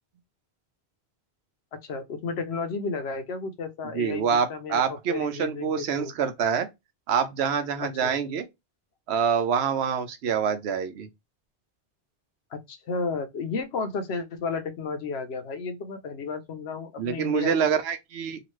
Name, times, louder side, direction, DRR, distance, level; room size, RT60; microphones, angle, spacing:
voice 1, 1.8-4.2 4.5-6.1 7.8-8.2 12.5-17.7, left 4 dB, 80° left, 0.9 m, -33 dB
voice 2, 3.9-6.7 7.1-8.5 9.1-11.1 17.0-18.4, right 7 dB, 85° right, 0.9 m, -26 dB
2.8 x 2.5 x 3.0 m
omnidirectional pair, 1.1 m